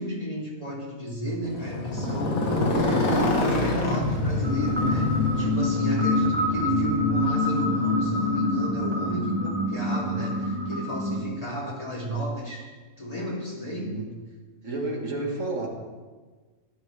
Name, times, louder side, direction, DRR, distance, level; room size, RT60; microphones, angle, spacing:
voice 1, 0.0-12.7 13.0-13.9, left 1 dB, 25° left, -5 dB, 3.1 m, -33 dB
Motorcycle, 1.4-9.5, left 2 dB, 80° left, 1.9 m, -27 dB
sound 1, 4.4-11.2, left 1 dB, 20° right, 1.3 m, -26 dB
voice 2, 13.6-14.1 14.6-15.7, right 2 dB, 60° right, -1 dB, 2.2 m, -31 dB
17.5 x 12.0 x 3.4 m, 1.3 s
omnidirectional pair, 1.5 m